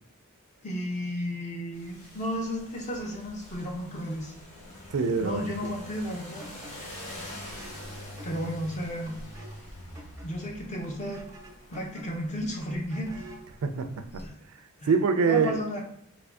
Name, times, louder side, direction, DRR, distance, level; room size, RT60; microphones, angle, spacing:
voice 1, 0.6-4.3 5.2-6.5 8.2-9.2 10.2-11.2 11.7-13.3 14.2-14.3 14.8-14.9 15.3-15.8, equal, 35° left, 0.6 m, -33 dB
sound 1, 1.7-14.3, left 1 dB, 90° left, 1.4 m, -45 dB
voice 2, 4.9-5.4 13.6-14.2 14.9-15.6, right 5 dB, 70° right, 0.4 m, -25 dB
sound 2, 6.4-13.5, equal, 15° right, 0.5 m, -50 dB
2.9 x 2.6 x 3.4 m
head